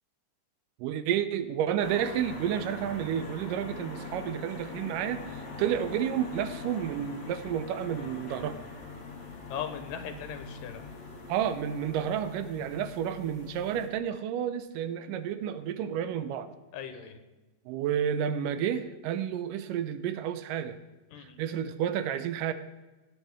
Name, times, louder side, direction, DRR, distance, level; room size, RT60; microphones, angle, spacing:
voice 1, 0.8-8.6 11.3-16.5 17.7-20.8 21.2-22.5, right 9 dB, 80° right, 11 dB, 2.3 m, -31 dB
sound 1, 1.8-13.9, left 4 dB, 50° left, 2.5 m, -42 dB
voice 2, 9.5-10.8 16.7-17.2 21.1-21.4, left 8 dB, 85° left, 7 dB, 2.7 m, -38 dB
17.0 x 9.0 x 3.6 m, 1.2 s
omnidirectional pair, 3.8 m